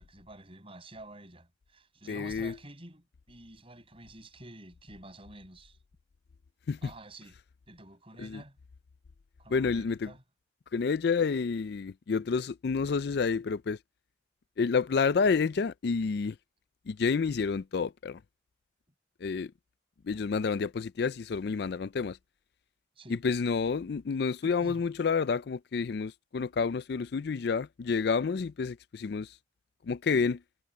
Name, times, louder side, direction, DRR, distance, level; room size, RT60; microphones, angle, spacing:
voice 1, 0.0-5.8 6.8-7.4 7.7-8.6 9.4-10.2 23.0-23.2 24.4-24.9, right 1 dB, 30° right, 6.7 m, -49 dB
voice 2, 2.1-2.6 6.7-6.9 8.2-8.4 9.5-10.1 10.7-13.8 14.6-16.4 16.9-18.2 19.2-19.5 20.0-22.2 23.1-29.4 29.8-30.4, left 5 dB, 55° left, 0.4 m, -29 dB
head